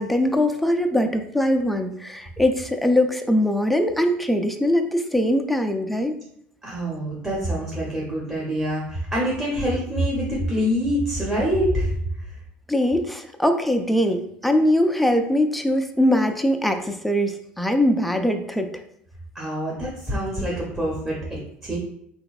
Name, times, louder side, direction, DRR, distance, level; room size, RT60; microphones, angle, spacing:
voice 1, 0.0-6.1 12.7-18.8, left 1 dB, ahead, 5 dB, 0.4 m, -22 dB
voice 2, 6.6-11.9 19.3-21.8, equal, 15° right, -4 dB, 0.9 m, -25 dB
3.3 x 3.0 x 2.4 m, 0.71 s
hypercardioid pair, 80°, 5 cm